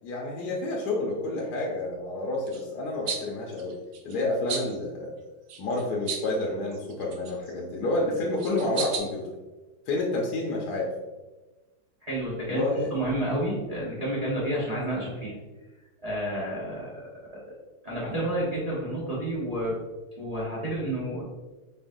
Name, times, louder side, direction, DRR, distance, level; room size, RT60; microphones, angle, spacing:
voice 1, 0.0-3.8 4.0-5.1 5.6-9.3 9.9-10.9 12.5-12.9, left 2 dB, 70° left, -2 dB, 1.0 m, -29 dB
sound 1, 2.4-2.6 3.1-3.2 3.5-4.2 4.5-4.8 5.5-6.4 6.7-7.5 8.1-9.0, right 6 dB, 75° right, 1.3 m, -34 dB
voice 2, 12.0-15.4 16.0-17.0 17.3-17.4 17.8-19.8 20.2-21.2, right 1 dB, 45° right, -7 dB, 0.4 m, -30 dB
4.9 x 3.7 x 2.6 m, 1.2 s
omnidirectional pair, 2.3 m